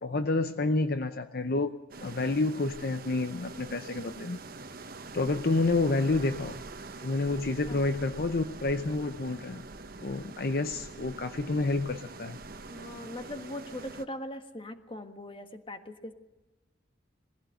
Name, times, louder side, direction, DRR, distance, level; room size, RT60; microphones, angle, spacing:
voice 1, 0.0-1.7 2.0-4.4 5.1-6.6 7.0-9.6 10.0-12.4, left 2 dB, 55° left, 9 dB, 0.7 m, -29 dB
sound 1, 1.9-14.1, right 3 dB, 55° right, 1.1 m, -44 dB
voice 2, 12.6-16.1, left 1 dB, 30° left, 7 dB, 1.5 m, -40 dB
21.0 x 15.5 x 7.9 m, 1.1 s
head